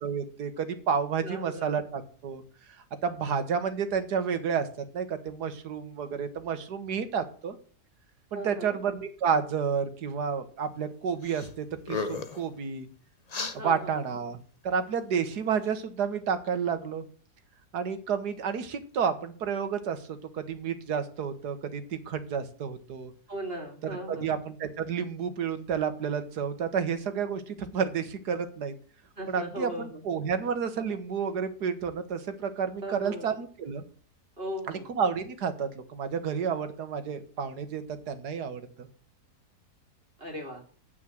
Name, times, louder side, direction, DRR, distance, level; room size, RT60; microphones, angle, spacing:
voice 1, 0.0-2.4 3.0-4.7 4.9-7.6 8.3-12.9 13.5-14.4 14.6-17.0 17.7-20.1 20.3-23.1 23.8-28.7 29.3-33.8 34.7-38.9, right 6 dB, 90° right, 9 dB, 1.8 m, -30 dB
voice 2, 1.2-1.8 8.3-8.8 13.5-14.0 23.3-24.3 29.2-30.0 32.8-33.3 34.4-34.9 40.2-40.6, right 1 dB, 35° right, 2 dB, 2.8 m, -38 dB
sound 1, 11.2-11.5 11.8-12.4 13.3-13.6, left 4 dB, 30° left, 0.9 m, -33 dB
9.0 x 6.2 x 7.7 m, 0.43 s
omnidirectional pair, 1.7 m